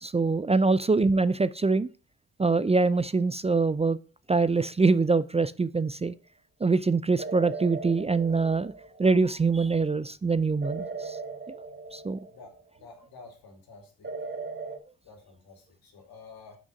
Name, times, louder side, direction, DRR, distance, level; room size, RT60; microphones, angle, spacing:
voice 1, 0.0-1.9 2.4-4.0 4.3-6.1 6.6-8.7 9.0-11.2 11.9-12.2, right 4 dB, 20° right, 16 dB, 0.4 m, -24 dB
sound 1, 7.2-9.2 10.6-12.7 14.0-14.8, right 4 dB, 35° right, 1.6 m, -38 dB
voice 2, 12.3-14.1 15.0-16.6, left 4 dB, 90° left, 2 dB, 2.6 m, -50 dB
5.9 x 5.4 x 6.2 m, 0.37 s
cardioid pair, 65°, 35 cm